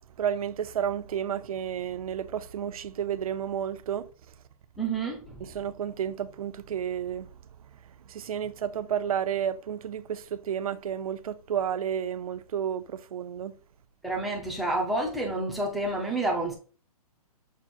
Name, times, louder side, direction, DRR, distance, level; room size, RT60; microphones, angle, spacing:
voice 1, 0.2-4.1 5.4-7.3 8.1-13.6, right 9 dB, 65° right, 0.5 m, -31 dB
voice 2, 4.8-5.5 14.0-16.5, right 2 dB, ahead, 0.4 m, -29 dB
6.1 x 2.1 x 4.2 m
hypercardioid pair, 165°, 20 cm